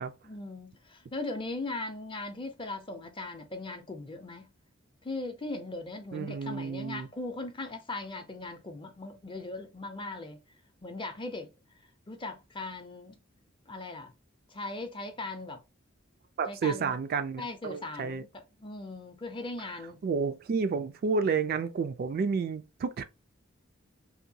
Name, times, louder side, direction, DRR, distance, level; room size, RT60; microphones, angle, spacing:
voice 1, 0.2-4.5 5.0-10.4 10.8-11.5 12.1-13.2 13.7-14.1 14.5-15.6 16.5-16.9 17.4-18.3 18.6-20.0, left 2 dB, 25° left, 0.5 m, -39 dB
voice 2, 6.1-7.1 16.4-18.2 20.0-23.0, right 5 dB, 50° right, 0.3 m, -30 dB
2.8 x 2.2 x 2.6 m
head